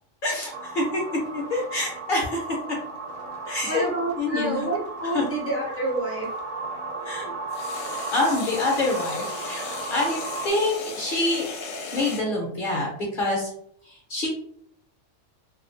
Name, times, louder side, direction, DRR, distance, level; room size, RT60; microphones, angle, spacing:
voice 1, 0.2-1.0 1.3-2.4 3.5-3.9 4.2-4.7 5.1-5.2 7.1-7.3 8.1-10.2 10.4-11.5 11.9-13.5 14.1-14.3, left 2 dB, 55° left, -2 dB, 0.7 m, -26 dB
sound 1, 0.5-10.5, right 3 dB, 75° right, 0.9 m, -35 dB
sound 2, 1.2-6.4 7.5-12.2, left 4 dB, 80° left, 0.9 m, -37 dB
voice 2, 3.7-6.3, right 2 dB, 15° right, -4 dB, 0.5 m, -28 dB
2.4 x 2.3 x 2.5 m, 0.68 s
omnidirectional pair, 1.3 m